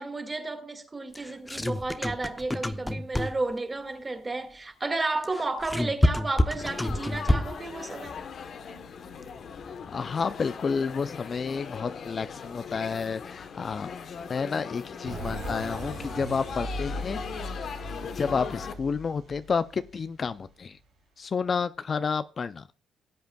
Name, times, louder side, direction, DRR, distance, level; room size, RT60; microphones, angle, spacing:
voice 1, 0.0-8.2, right 2 dB, 25° right, 1.8 m, -32 dB
sound 1, 1.1-3.6 5.2-7.7, left 1 dB, 10° left, 0.8 m, -27 dB
Laughter / Chatter / Crowd, 6.6-18.7, left 6 dB, 60° left, 1.1 m, -39 dB
voice 2, 9.9-13.9 14.3-17.2 17.5-17.7 18.1-20.8 21.2-22.6, left 5 dB, 40° left, 0.4 m, -30 dB
sound 2, 15.0-20.6, right 1 dB, 80° right, 3.5 m, -38 dB
18.5 x 7.9 x 2.3 m
cardioid pair, 90°, 0 cm